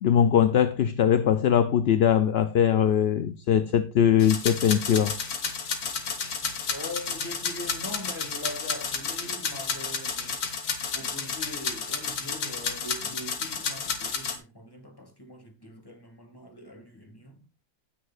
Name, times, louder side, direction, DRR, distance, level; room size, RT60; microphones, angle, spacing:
voice 1, 0.0-5.2, left 9 dB, 60° left, 0.7 m, -21 dB
sound 1, 4.2-14.4, left 5 dB, 80° left, 2.0 m, -31 dB
voice 2, 6.7-10.4 10.9-17.4, left 1 dB, 15° left, 2.2 m, -41 dB
16.5 x 6.4 x 2.5 m
omnidirectional pair, 1.6 m